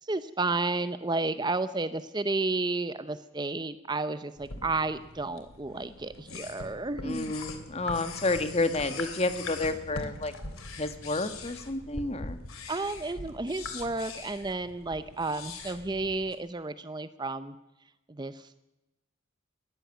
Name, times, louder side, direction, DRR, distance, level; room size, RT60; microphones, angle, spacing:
voice 1, 0.0-7.4 12.7-17.6 18.1-18.6, right 3 dB, 20° right, 13 dB, 0.6 m, -32 dB
sound 1, 4.4-16.4, left 3 dB, 85° left, 3.0 m, -42 dB
voice 2, 7.0-10.3 10.8-12.4, left 2 dB, 30° left, 10 dB, 1.5 m, -30 dB
20.5 x 15.0 x 9.1 m, 0.95 s
head